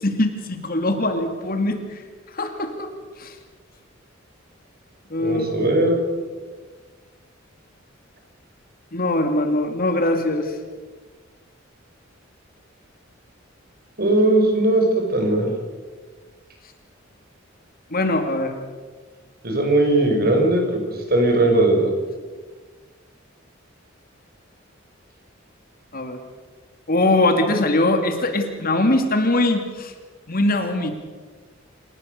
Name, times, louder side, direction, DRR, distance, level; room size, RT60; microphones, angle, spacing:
voice 1, 0.0-1.8 2.3-2.9 3.2-3.3 5.1-5.7 8.9-10.5 17.9-18.5 25.9-26.2 26.9-29.9 30.3-30.9, left 2 dB, 50° left, 6 dB, 2.7 m, -21 dB
voice 2, 5.2-6.0 14.0-15.5 19.4-21.9, right 2 dB, 50° right, 2 dB, 6.1 m, -19 dB
28.5 x 18.5 x 6.8 m, 1.4 s
head